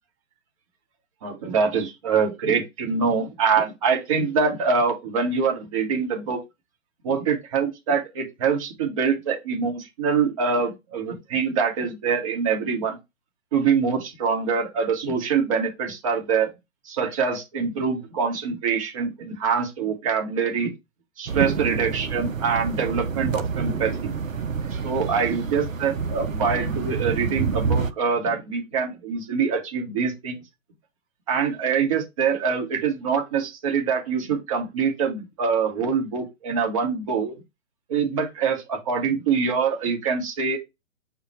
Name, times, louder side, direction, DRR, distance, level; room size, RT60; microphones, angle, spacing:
voice 1, 1.2-6.4 7.0-13.0 13.5-16.5 16.9-20.7 21.2-24.1 24.8-30.4 31.3-37.3 37.9-40.6, right 5 dB, 25° right, 1.0 m, -24 dB
sound 1, 21.3-27.9, right 5 dB, 80° right, 0.6 m, -28 dB
5.3 x 2.2 x 4.1 m
figure-of-eight pair, 130°, 39 cm